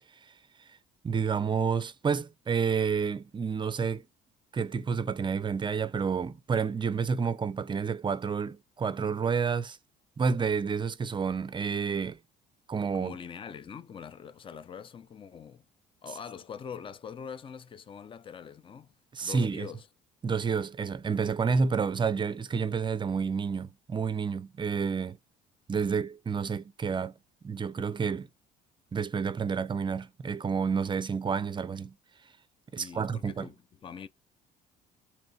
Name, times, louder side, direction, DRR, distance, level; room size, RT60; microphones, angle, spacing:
voice 1, 1.0-4.0 4.5-9.8 10.2-12.2 12.7-13.2 19.1-19.7 20.2-25.2 25.7-27.1 27.4-28.3 28.9-31.9 32.7-33.5, right 5 dB, 25° right, 0.5 m, -29 dB
voice 2, 12.9-15.7 16.0-18.9 19.2-19.9 32.8-33.6 33.8-34.1, left 7 dB, 30° left, 0.5 m, -43 dB
3.6 x 3.1 x 3.3 m
cardioid pair, 95°, 18 cm